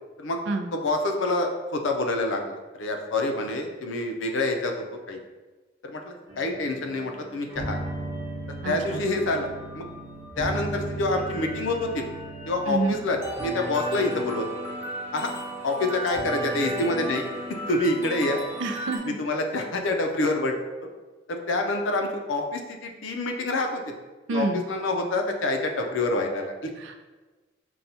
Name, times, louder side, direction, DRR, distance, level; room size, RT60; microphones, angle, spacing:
voice 1, 0.7-4.7 5.1-5.2 5.8-7.8 8.6-9.5 9.7-9.9 10.4-12.1 12.5-14.5 15.1-15.3 15.6-17.3 17.7-18.4 19.0-20.5 21.3-24.0 24.3-26.7, left 2 dB, 75° left, 3 dB, 0.5 m, -27 dB
sound 1, 6.3-19.0, right 1 dB, 10° right, 0.8 m, -35 dB
voice 2, 8.6-9.0 12.7-13.0 18.6-19.2 24.3-24.6 26.8-27.0, right 3 dB, 70° right, 4 dB, 0.4 m, -28 dB
5.6 x 2.2 x 2.6 m, 1.3 s
head